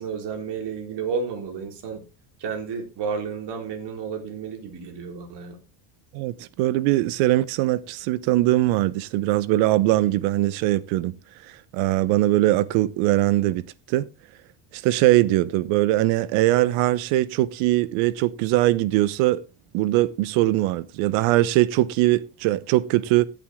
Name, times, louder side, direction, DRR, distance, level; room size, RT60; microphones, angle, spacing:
voice 1, 0.0-2.0 2.4-5.6, right 6 dB, 60° right, 4.1 m, -31 dB
voice 2, 6.1-11.2 11.7-13.6 13.9-14.1 14.7-19.4 19.7-23.3, right 16 dB, 90° right, 1.0 m, -21 dB
15.5 x 8.2 x 3.7 m
cardioid pair, 125°, 47 cm